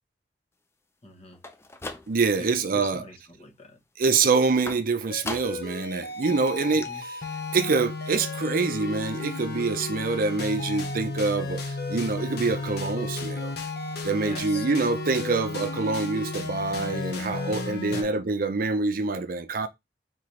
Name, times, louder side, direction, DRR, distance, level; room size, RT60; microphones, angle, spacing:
voice 1, 1.0-1.4 2.4-3.8 6.8-7.0 14.2-14.6 17.9-18.2, left 2 dB, 35° left, 1.1 m, -42 dB
sound 1, 1.3-2.5 2.9-3.4 4.7-5.8 6.1-6.2 6.5-6.6 6.8-6.9, left 2 dB, 15° left, 0.5 m, -39 dB
voice 2, 2.1-3.0 4.0-7.3 7.5-13.5 14.0-19.7, right 4 dB, 55° right, 0.5 m, -26 dB
sound 2, 5.1-18.0, left 3 dB, 60° left, 0.9 m, -33 dB
4.2 x 3.8 x 3.1 m
head